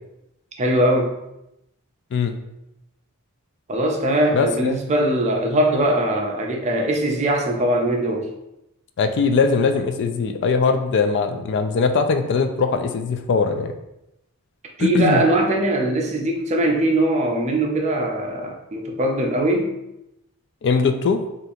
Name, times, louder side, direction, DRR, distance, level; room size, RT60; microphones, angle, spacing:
voice 1, 0.6-1.1 3.7-8.3 14.8-19.8, right 1 dB, 30° right, 1 dB, 0.5 m, -21 dB
voice 2, 4.3-4.8 9.0-13.7 14.8-15.2 20.6-21.2, left 5 dB, 55° left, 7 dB, 0.3 m, -20 dB
2.7 x 2.5 x 4.1 m, 0.86 s
head